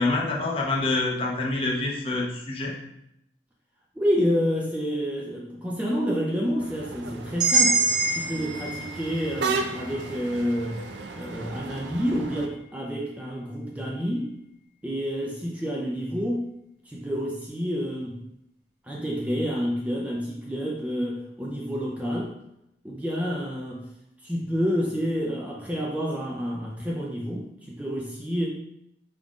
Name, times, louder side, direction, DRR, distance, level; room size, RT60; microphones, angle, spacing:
voice 1, 0.0-2.7, left 2 dB, 30° left, -2 dB, 0.7 m, -26 dB
voice 2, 4.0-7.8 8.1-10.8 11.1-14.3 14.8-16.5 16.9-18.2 18.8-22.3 22.8-23.8 24.2-28.5, equal, 10° right, -3 dB, 0.4 m, -28 dB
sound 1, 6.6-12.5, right 4 dB, 75° right, 0.4 m, -35 dB
sound 2, 7.4-11.4, right 3 dB, 25° right, 1.2 m, -27 dB
5.1 x 3.6 x 2.4 m, 0.81 s
head